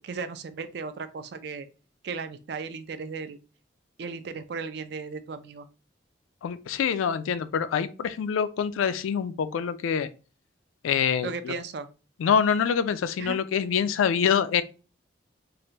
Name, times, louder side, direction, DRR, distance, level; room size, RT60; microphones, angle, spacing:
voice 1, 0.0-1.7 2.0-3.4 4.0-5.7 11.2-11.9 13.2-13.4, right 4 dB, 55° right, 0.3 m, -36 dB
voice 2, 6.4-10.1 10.8-11.5 12.2-14.6, left 7 dB, 90° left, 0.3 m, -25 dB
3.3 x 2.5 x 2.8 m
head